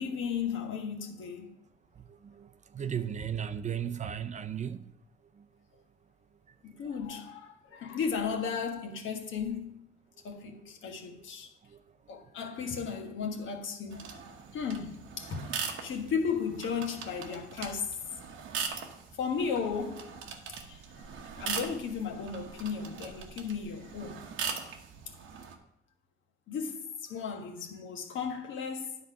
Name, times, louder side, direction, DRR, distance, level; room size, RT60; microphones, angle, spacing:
voice 1, 0.0-1.5 6.6-9.9 10.2-11.5 12.1-14.2 14.5-15.5 15.8-17.9 19.1-20.1 20.7-20.8 21.4-24.2 26.5-29.0, left 6 dB, 75° left, 1.4 m, -35 dB
voice 2, 2.1-4.9 11.7-11.8, right 8 dB, 35° right, 0.5 m, -35 dB
sound 1, 13.9-25.6, right 6 dB, 85° right, 1.0 m, -41 dB
10.0 x 4.0 x 5.9 m
cardioid pair, 90°, 20 cm